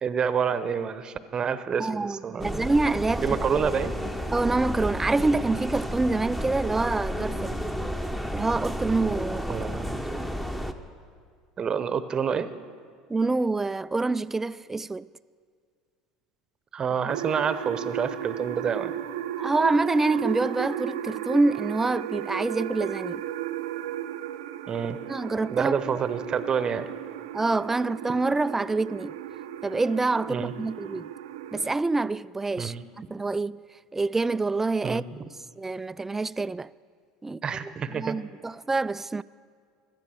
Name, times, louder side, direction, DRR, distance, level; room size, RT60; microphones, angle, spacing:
voice 1, 0.0-2.7 3.1-4.0 9.5-10.0 11.6-12.5 16.7-18.9 24.7-25.0 25.5-26.9 30.3-30.5 32.6-32.8 34.8-35.0 37.4-38.2, right 7 dB, 35° right, 0.8 m, -28 dB
voice 2, 1.8-3.5 4.3-7.6 8.3-9.6 13.1-15.1 19.4-23.2 25.1-26.0 27.3-29.1 29.6-31.1 31.5-32.7 33.1-33.6 33.9-35.0 35.6-36.7 37.2-37.4 37.9-39.2, right 3 dB, 15° right, 0.3 m, -26 dB
sound 1, 2.4-10.7, equal, 5° left, 1.0 m, -31 dB
sound 2, 17.1-31.7, right 12 dB, 80° right, 0.6 m, -35 dB
17.0 x 12.5 x 6.4 m
hypercardioid pair, 80°, 2 cm